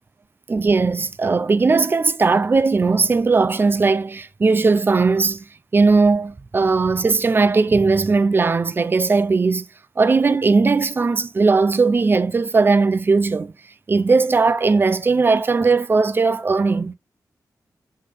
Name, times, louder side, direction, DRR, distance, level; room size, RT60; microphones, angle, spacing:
voice 1, 0.5-5.5 5.7-9.6 10.0-13.5 13.9-16.9, right 4 dB, 35° right, 0.7 m, -18 dB
7.8 x 3.6 x 5.1 m
wide cardioid pair, 120°, 7 cm